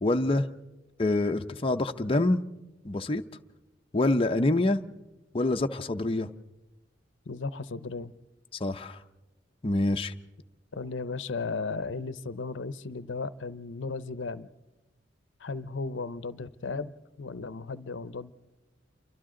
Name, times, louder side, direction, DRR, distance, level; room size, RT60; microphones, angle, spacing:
voice 1, 0.0-0.5 1.0-2.4 2.8-3.2 3.9-4.8 5.3-6.3 8.6-9.0 9.6-10.1, left 2 dB, 30° left, 5 dB, 0.6 m, -26 dB
voice 2, 7.3-8.1 10.7-14.5 15.4-18.3, left 4 dB, 75° left, 15 dB, 0.7 m, -35 dB
28.5 x 24.0 x 3.8 m, 1.1 s
head